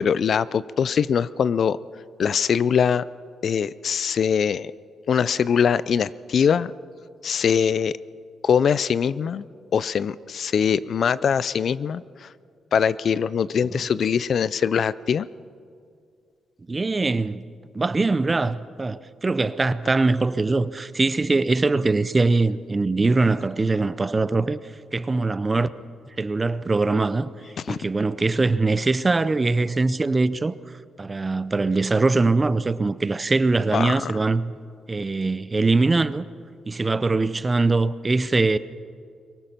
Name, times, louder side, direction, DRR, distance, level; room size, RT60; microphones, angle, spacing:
voice 1, 0.0-1.8 2.2-3.0 3.4-4.7 5.1-6.7 7.2-7.9 8.4-9.4 9.7-12.3 12.7-15.3 27.7-27.8 33.7-34.1, left 7 dB, 55° left, 0.4 m, -22 dB
voice 2, 16.7-17.4 17.7-24.6 24.9-25.7 26.2-27.3 27.7-30.6 31.0-34.6 34.9-36.2 36.7-38.6, right 3 dB, 25° right, 0.6 m, -22 dB
23.5 x 19.0 x 5.8 m
cardioid pair, 110°, 0 cm